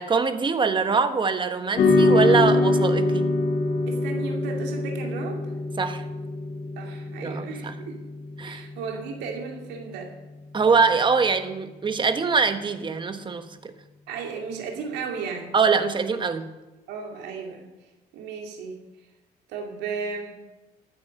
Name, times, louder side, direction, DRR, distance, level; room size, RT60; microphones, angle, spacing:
voice 1, 0.0-3.3 5.8-6.0 7.2-7.8 8.4-8.6 10.5-13.7 15.5-16.5, right 5 dB, 30° right, 9 dB, 1.3 m, -23 dB
sound 1, 1.8-10.3, left 2 dB, 55° left, 2.5 m, -25 dB
voice 2, 3.9-5.4 6.8-8.0 8.4-10.1 14.1-15.5 16.9-17.6 18.1-18.8 19.5-20.4, right 5 dB, 90° right, 2 dB, 2.4 m, -34 dB
14.0 x 9.6 x 6.5 m, 1.1 s
cardioid pair, 110°, 17 cm